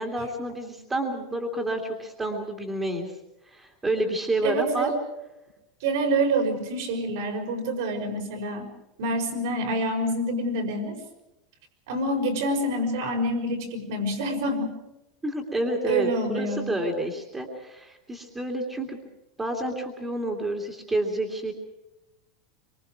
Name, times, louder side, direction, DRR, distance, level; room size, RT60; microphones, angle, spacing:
voice 1, 0.0-3.1 3.4-4.9 15.2-19.0 19.4-21.5, right 1 dB, 10° right, 2 dB, 2.7 m, -29 dB
voice 2, 4.4-4.9 5.8-8.7 9.0-11.0 11.9-14.7 15.8-16.7, right 1 dB, 65° right, 4 dB, 5.4 m, -27 dB
26.0 x 25.0 x 4.7 m, 0.95 s
supercardioid pair, 170°, 2 cm